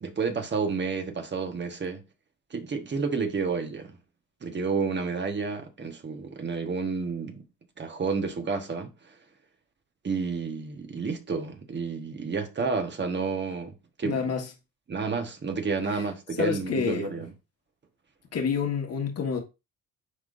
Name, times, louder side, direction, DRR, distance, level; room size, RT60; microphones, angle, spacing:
voice 1, 0.0-2.0 2.5-4.0 4.4-7.4 7.8-8.9 10.0-13.7 14.0-14.3 14.9-17.3, right 5 dB, 35° right, 1.3 m, -30 dB
voice 2, 14.0-14.5 15.9-16.0 16.4-17.2 18.3-19.4, left 6 dB, 55° left, 1.5 m, -28 dB
9.8 x 3.7 x 2.6 m
cardioid pair, 90°, 30 cm